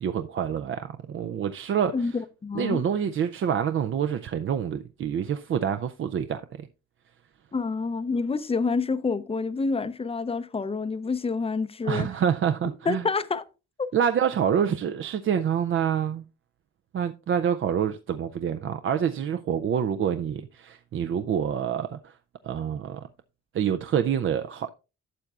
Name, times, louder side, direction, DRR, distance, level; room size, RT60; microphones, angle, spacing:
voice 1, 0.0-2.0 2.5-6.7 11.9-13.0 13.9-16.2 16.9-22.1 22.4-23.1 23.5-24.7, right 8 dB, 45° right, 0.5 m, -27 dB
voice 2, 1.9-2.8 7.5-12.1 12.9-13.4 13.8-13.9, left 4 dB, 20° left, 0.5 m, -28 dB
12.0 x 6.7 x 2.4 m
cardioid pair, 90°, 30 cm